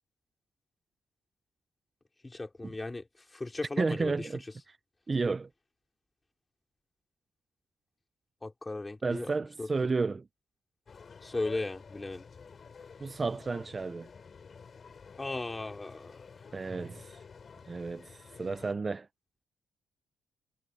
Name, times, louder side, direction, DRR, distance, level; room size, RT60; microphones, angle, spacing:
voice 1, 2.2-3.1 3.3-4.3 8.4-9.3 9.6-9.7 11.2-12.2 15.2-16.3, left 2 dB, 20° left, 5.2 m, -36 dB
voice 2, 3.8-4.4 5.1-5.5 9.0-10.2 13.0-14.1 16.5-17.2 17.7-19.1, right 4 dB, 30° right, 0.6 m, -32 dB
sound 1, 10.9-18.7, left 5 dB, 40° left, 6.5 m, -51 dB
cardioid pair, 90°, 0 cm